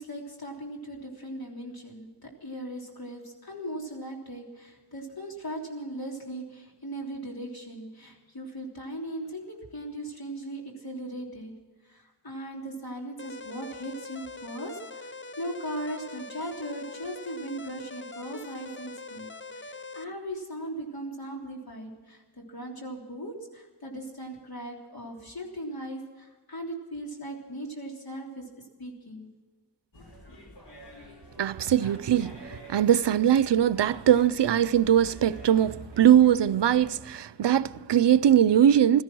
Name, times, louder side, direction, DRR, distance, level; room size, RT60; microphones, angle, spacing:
voice 1, 0.0-11.5 11.8-28.5 28.8-29.3 30.3-30.4, right 1 dB, 60° left, 3.5 m, -38 dB
sound 1, 13.2-20.1, left 3 dB, 30° left, 0.7 m, -43 dB
sound 2, 29.9-37.0, equal, 75° left, 5.1 m, -48 dB
voice 2, 31.4-39.0, right 10 dB, 85° right, 0.6 m, -21 dB
16.5 x 13.5 x 6.2 m
wide cardioid pair, 65°, 41 cm